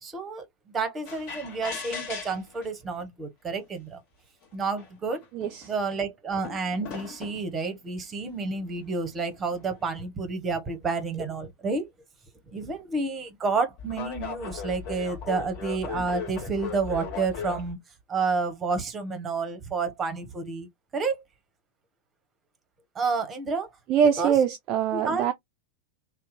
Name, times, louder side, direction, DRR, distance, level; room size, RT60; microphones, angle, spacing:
voice 1, 0.0-0.5 0.7-4.0 4.5-5.2 5.6-11.9 12.5-17.8 18.1-21.2 22.9-23.7 24.2-24.3 24.9-25.3, right 4 dB, 20° right, 0.8 m, -30 dB
sound 1, 1.1-2.7 3.6-3.7 4.4-4.5 4.8-5.7 6.4-7.5 8.4-10.0 12.6-12.8 13.8-17.7, left 6 dB, 40° left, 1.1 m, -37 dB
voice 2, 5.3-5.7 23.9-25.3, right 8 dB, 35° right, 0.4 m, -23 dB
2.7 x 2.0 x 2.5 m
figure-of-eight pair, 90°, 0 cm